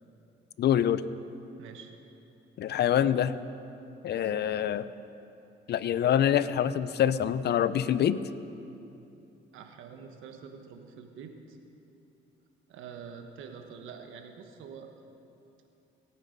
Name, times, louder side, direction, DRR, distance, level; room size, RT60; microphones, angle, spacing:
voice 1, 0.6-1.0 2.6-3.4 4.0-4.9 5.7-8.2, left 10 dB, 55° left, 15 dB, 0.5 m, -25 dB
voice 2, 1.6-1.9 9.5-11.6 12.7-14.9, right 6 dB, 85° right, 5 dB, 1.2 m, -46 dB
18.0 x 8.9 x 5.2 m, 2.8 s
cardioid pair, 90°, 20 cm